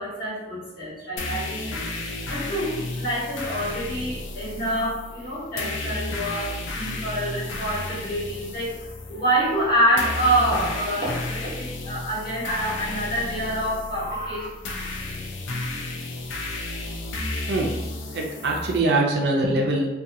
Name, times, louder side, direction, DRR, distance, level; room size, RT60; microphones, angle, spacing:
voice 1, 0.0-1.8 2.3-14.5, right 1 dB, 50° left, -9 dB, 1.3 m, -26 dB
sound 1, 1.2-18.8, left 2 dB, 80° left, 0.4 m, -33 dB
voice 2, 18.1-19.9, right 2 dB, 60° right, 0 dB, 0.4 m, -23 dB
2.7 x 2.3 x 2.6 m, 1.0 s
head